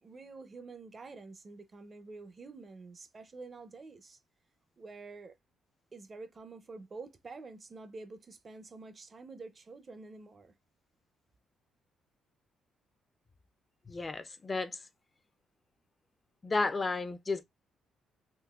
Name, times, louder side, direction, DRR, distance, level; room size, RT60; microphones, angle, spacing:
voice 1, 0.0-4.2 4.8-5.3 5.9-10.5, right 3 dB, 35° right, 0.4 m, -48 dB
voice 2, 13.9-14.8 16.4-17.4, left 3 dB, 30° left, 0.3 m, -32 dB
3.8 x 2.5 x 2.2 m
cardioid pair, 90°, 0 cm